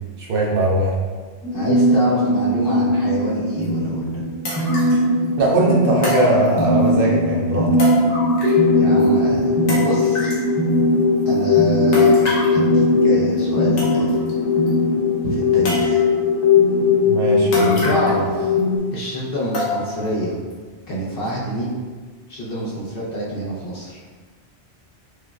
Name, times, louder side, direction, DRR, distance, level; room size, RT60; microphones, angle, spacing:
voice 1, 0.2-0.9 5.4-7.7 17.0-17.9, right 2 dB, 60° right, -4 dB, 0.7 m, -20 dB
sound 1, 1.4-18.8, left 2 dB, 30° left, 0.4 m, -18 dB
voice 2, 1.5-4.2 8.7-10.3 11.3-14.2 15.2-16.0 17.8-18.6 18.9-20.4 20.9-21.8 22.3-24.0, equal, 55° left, -5 dB, 0.9 m, -27 dB
sound 2, 3.6-3.7 4.4-5.1 6.0-6.9 7.8-8.7 9.0-9.1 9.7-10.5 11.9-12.6 13.4-13.5 13.8-14.3 14.7-14.8 15.6-16.2 17.5-18.3 18.6-18.7 19.5-20.1 20.5-20.6 21.2-21.3, left 2 dB, 85° left, 1.1 m, -27 dB
4.7 x 2.2 x 2.3 m, 1.4 s
omnidirectional pair, 1.2 m